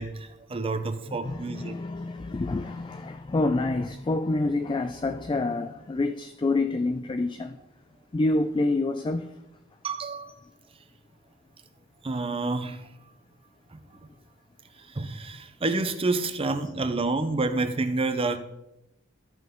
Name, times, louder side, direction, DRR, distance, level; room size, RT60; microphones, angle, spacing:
voice 1, 0.0-1.7 9.8-10.3 12.0-12.9 13.7-14.1 14.8-18.4, right 3 dB, 25° right, 0.6 m, -29 dB
voice 2, 1.1-7.6 8.1-9.3, left 2 dB, 20° left, 0.3 m, -27 dB
13.5 x 5.7 x 3.7 m
head